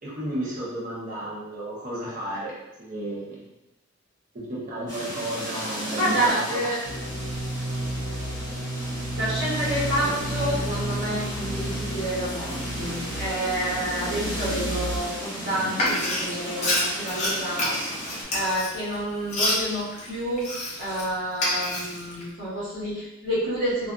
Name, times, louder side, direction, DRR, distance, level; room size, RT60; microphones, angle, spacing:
voice 1, 0.0-3.4 4.3-6.7, right 1 dB, 40° right, -6 dB, 0.8 m, -33 dB
sound 1, 4.9-18.2, equal, 15° left, 1.0 m, -35 dB
voice 2, 6.0-6.8 9.2-17.8 18.3-23.9, right 1 dB, 55° right, -9 dB, 1.2 m, -29 dB
sound 2, 6.8-15.0, right 1 dB, 80° left, 0.6 m, -32 dB
Frying (food), 15.7-21.0 21.3-22.2, left 1 dB, 30° left, 0.5 m, -28 dB
2.5 x 2.3 x 2.3 m, 0.96 s
head